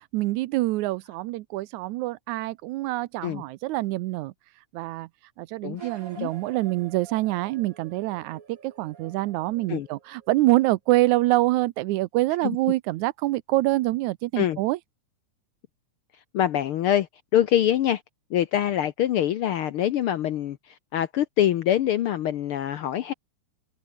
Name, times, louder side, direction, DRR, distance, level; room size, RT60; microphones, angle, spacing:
voice 1, 0.1-4.3 4.7-5.1 5.4-14.8, right 18 dB, 80° right, 2.0 m, -25 dB
sound 1, 5.7-10.6, right 6 dB, 40° right, 1.3 m, -47 dB
voice 2, 16.3-17.1 17.3-18.0 18.3-23.1, left 11 dB, 80° left, 1.2 m, -24 dB
omnidirectional pair, 3.5 m